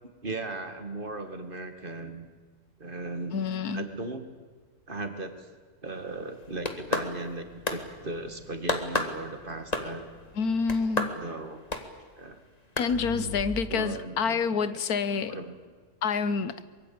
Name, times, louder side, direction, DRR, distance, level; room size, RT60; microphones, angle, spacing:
voice 1, 0.2-2.3 2.8-3.4 3.7-4.3 4.9-5.5 5.8-10.0 11.2-11.6 12.2-12.4 13.7-14.8 15.3-15.5, right 2 dB, 35° right, 7 dB, 2.3 m, -37 dB
voice 2, 3.3-3.8 10.4-11.1 12.8-15.4 16.0-16.5, left 5 dB, 85° left, 14 dB, 1.6 m, -27 dB
sound 1, 6.4-7.4 7.7-7.8 8.7-9.2 9.7-10.1 10.7-11.2 11.7-11.9 12.8-12.9, left 2 dB, 25° left, 1.9 m, -29 dB
sound 2, 6.4-10.8 12.9-13.4, left 1 dB, 80° right, 4.0 m, -46 dB
24.0 x 22.5 x 8.7 m, 1.5 s
omnidirectional pair, 1.6 m